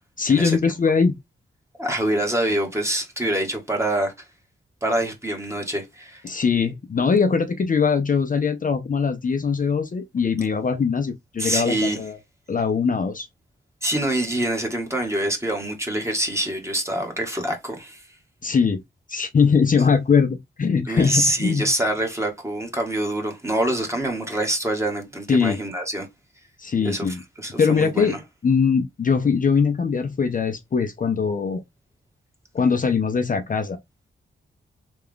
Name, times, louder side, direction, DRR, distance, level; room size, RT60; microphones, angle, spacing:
voice 1, 0.2-1.2 6.2-12.2 12.5-13.3 18.4-18.8 19.1-21.7 25.3-25.6 26.6-27.2 27.6-28.2 28.4-31.6 32.5-33.8, left 5 dB, 40° left, 0.6 m, -21 dB
voice 2, 1.8-4.1 4.8-6.2 11.4-12.0 13.8-18.0 20.8-26.1 26.8-28.2, right 1 dB, 15° right, 1.3 m, -25 dB
3.4 x 2.4 x 3.5 m
wide cardioid pair, 100°, 20 cm